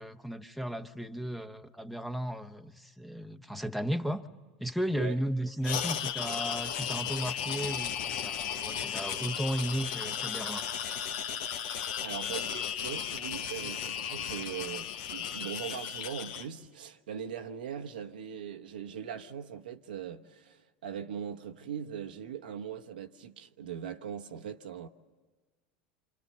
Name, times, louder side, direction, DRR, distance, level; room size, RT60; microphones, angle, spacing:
voice 1, 0.0-4.3 4.6-10.7, equal, ahead, 1.1 m, -35 dB
sound 1, 5.6-16.5, left 8 dB, 70° left, 1.2 m, -35 dB
voice 2, 12.0-24.9, right 8 dB, 80° right, 1.1 m, -40 dB
28.0 x 26.5 x 6.7 m
hypercardioid pair, 85°, 5 cm